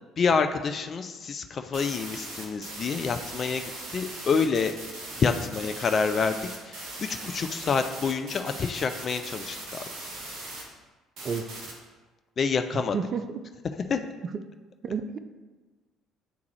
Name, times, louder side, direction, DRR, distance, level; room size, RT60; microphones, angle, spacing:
voice 1, 0.2-3.6 3.9-4.7 5.2-6.4 6.7-9.8 12.4-13.0 13.9-14.0, left 5 dB, 45° left, 7 dB, 0.4 m, -27 dB
sound 1, 1.7-10.6 11.2-11.7, right 2 dB, 60° right, 1.4 m, -39 dB
voice 2, 11.2-11.6 12.7-13.4 14.2-14.4 14.8-15.2, right 5 dB, 45° right, 10 dB, 0.4 m, -31 dB
9.0 x 3.5 x 3.2 m, 1.3 s
hypercardioid pair, 55°, 0 cm